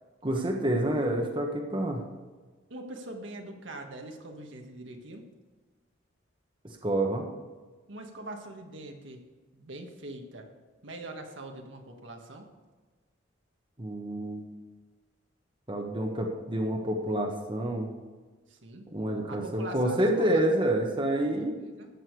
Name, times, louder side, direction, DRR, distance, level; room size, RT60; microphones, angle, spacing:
voice 1, 0.2-2.0 6.6-7.3 13.8-14.4 15.7-17.9 18.9-21.6, right 1 dB, 25° right, 1 dB, 1.2 m, -28 dB
voice 2, 2.7-5.3 7.9-9.2 9.5-10.5 10.8-12.5 18.5-18.9 19.3-20.4 21.6-21.9, right 2 dB, 70° right, 3 dB, 1.6 m, -42 dB
14.0 x 8.8 x 4.8 m, 1.4 s
head